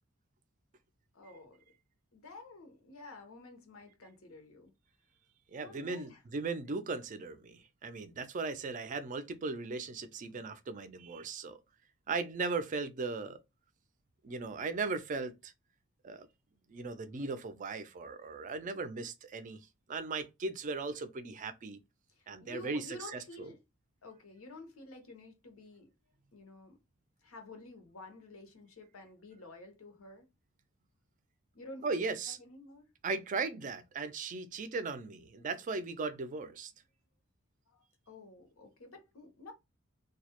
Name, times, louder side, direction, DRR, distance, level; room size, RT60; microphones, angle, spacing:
voice 1, 1.1-1.6 2.1-4.7 5.6-6.2 22.1-23.6 24.0-25.9 26.3-26.8 27.2-30.3 31.5-32.9 37.7-39.5, left 2 dB, 85° left, 0.8 m, -51 dB
voice 2, 5.5-11.6 12.1-13.4 14.2-15.5 16.0-16.3 16.7-19.6 19.9-21.8 22.3-22.8 23.1-23.2 31.8-32.4 33.0-36.7, right 4 dB, 40° right, 0.4 m, -37 dB
2.2 x 2.0 x 2.8 m
head